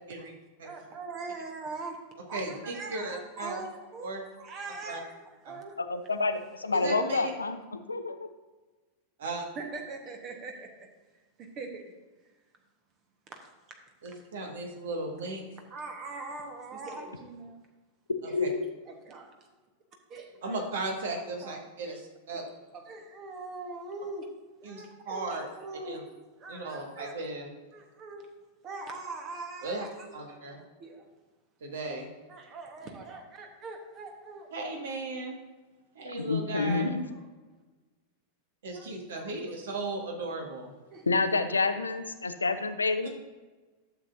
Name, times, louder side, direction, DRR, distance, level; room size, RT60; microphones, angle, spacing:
voice 1, 0.6-2.0 2.3-4.1 4.4-5.1 5.4-5.8 9.5-10.9 11.4-12.0 15.7-17.6 18.2-18.4 18.9-19.3 20.1-20.6 21.4-21.5 21.8-22.0 22.3-22.4 22.7-24.3 24.6-26.0 26.4-27.2 27.7-28.3 28.6-31.1 32.3-34.5 36.0-36.1 37.2-37.3 38.7-39.3 40.9-41.5, right 3 dB, 35° right, 4 dB, 1.2 m, -42 dB
voice 2, 2.3-3.6 4.0-4.2 4.9-5.0 5.5-5.6 6.7-7.3 9.2-9.5 14.0-15.4 18.4-18.5 20.4-22.4 24.6-25.5 25.9-26.0 26.5-27.5 29.6-29.9 30.1-30.6 31.6-32.1 34.5-35.4 36.0-36.9 38.6-40.7, right 2 dB, 60° right, 1 dB, 1.8 m, -36 dB
voice 3, 5.8-8.3 18.3-18.7 36.0-37.1 41.1-43.1, left 3 dB, 75° left, 10 dB, 0.6 m, -28 dB
12.0 x 7.3 x 2.7 m, 1.3 s
figure-of-eight pair, 90°, 0 cm